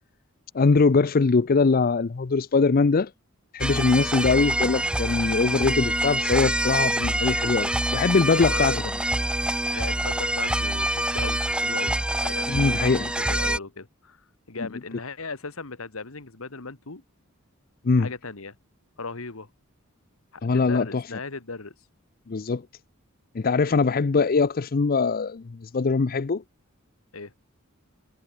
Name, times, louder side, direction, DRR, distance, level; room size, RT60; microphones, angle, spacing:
voice 1, 0.5-3.1 3.5-8.7 12.5-13.1 17.8-18.1 20.4-21.0 22.3-22.6 23.3-26.4, left 4 dB, 45° left, 0.5 m, -22 dB
sound 1, 3.6-13.6, right 1 dB, 5° right, 1.2 m, -26 dB
voice 2, 8.5-8.8 9.7-11.9 12.2-14.2 14.5-17.0 18.0-18.5 19.0-19.5 20.3-21.7 27.1-27.3, left 4 dB, 70° left, 1.6 m, -37 dB
head